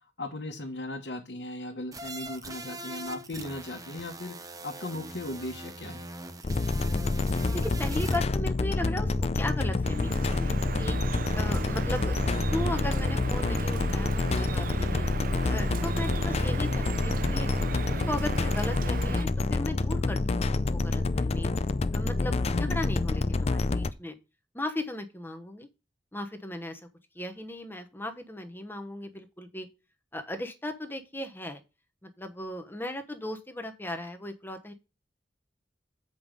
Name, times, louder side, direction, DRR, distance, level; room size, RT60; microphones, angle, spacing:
voice 1, 0.2-4.4 4.6-6.1 22.5-22.8, left 2 dB, 70° left, 1 dB, 1.2 m, -37 dB
sound 1, 1.9-8.2, right 2 dB, 20° right, 0.8 m, -42 dB
sound 2, 6.4-23.9, left 3 dB, 35° left, 0.5 m, -27 dB
voice 2, 7.5-11.0 11.3-15.0 15.5-17.5 17.9-21.5 21.9-24.1 24.5-25.7 26.1-26.8 27.1-29.7 30.1-31.6 32.0-34.7, left 1 dB, 10° left, 7 dB, 1.0 m, -37 dB
Drip, 9.8-19.2, right 5 dB, 50° right, 0.5 m, -37 dB
7.9 x 5.4 x 5.1 m, 0.29 s
head